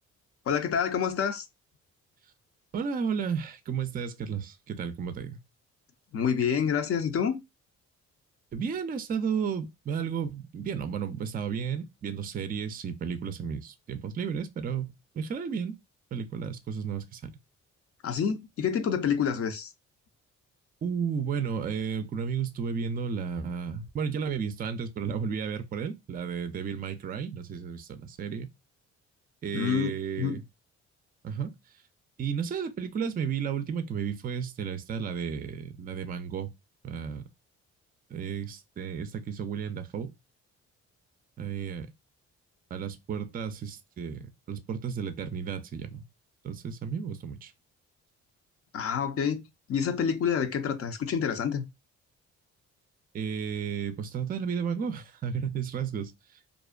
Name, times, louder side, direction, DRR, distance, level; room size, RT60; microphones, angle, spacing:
voice 1, 0.5-1.4 6.1-7.4 18.0-19.7 29.5-29.9 30.2-30.4 48.7-49.4 49.7-51.6, left 7 dB, 50° left, 0.5 m, -27 dB
voice 2, 2.7-5.4 8.5-15.8 16.1-17.3 20.8-28.5 29.4-30.4 31.2-31.5 32.2-36.5 36.8-37.3 38.1-40.1 41.4-41.9 42.7-46.0 46.4-47.5 53.1-56.1, right 6 dB, 30° right, 0.4 m, -33 dB
2.6 x 2.1 x 2.3 m
cardioid pair, 90°, 30 cm